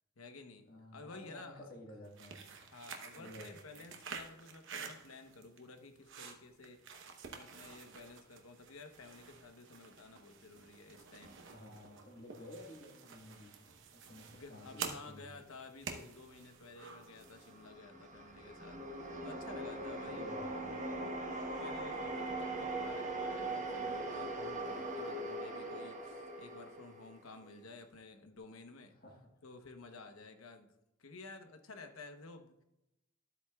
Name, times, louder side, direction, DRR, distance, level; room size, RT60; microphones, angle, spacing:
voice 1, 0.2-0.7 0.9-1.7 2.7-6.8 7.3-11.4 14.3-20.4 21.5-28.9 29.4-30.7 31.0-32.6, left 3 dB, 75° left, 6 dB, 0.9 m, -53 dB
voice 2, 0.7-2.6 3.1-3.6 11.3-15.4 20.0-20.9 28.9-29.2, left 1 dB, 45° left, 0 dB, 1.6 m, -53 dB
sound 1, 2.0-17.6, right 6 dB, 60° right, 0.9 m, -50 dB
sound 2, 17.1-27.5, right 2 dB, 35° right, 1.2 m, -41 dB
12.5 x 8.1 x 2.3 m, 0.89 s
head